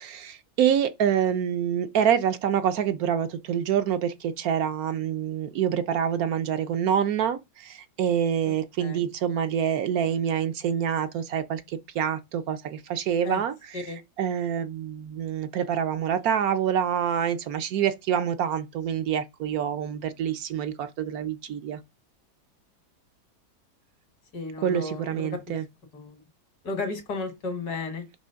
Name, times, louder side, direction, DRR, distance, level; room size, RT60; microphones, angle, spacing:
voice 1, 0.0-13.5 14.2-21.8 24.6-25.6, right 9 dB, 70° right, 1.1 m, -26 dB
voice 2, 24.3-25.6 25.9-26.2 26.6-28.0, left 3 dB, 75° left, 2.2 m, -33 dB
6.2 x 3.1 x 5.6 m
omnidirectional pair, 1.8 m